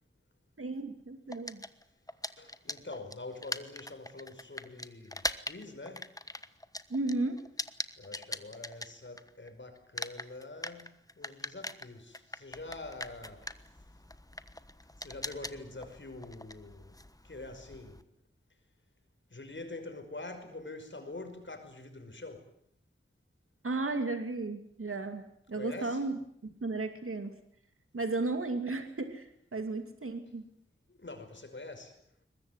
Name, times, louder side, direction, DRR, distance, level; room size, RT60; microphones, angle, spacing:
voice 1, 0.6-1.6 6.9-7.4 23.6-27.4 27.9-30.5, right 3 dB, 85° right, 7 dB, 2.6 m, -34 dB
sound 1, 1.3-9.5 9.8-18.0, left 1 dB, 15° left, 1.2 m, -41 dB
voice 2, 2.4-6.1 8.0-10.9 11.2-13.5 15.0-17.0 17.2-18.0 19.3-22.5 25.5-26.0 30.9-32.0, left 2 dB, 60° left, 6 dB, 5.6 m, -45 dB
22.5 x 21.0 x 9.5 m, 0.70 s
wide cardioid pair, 65°, 21 cm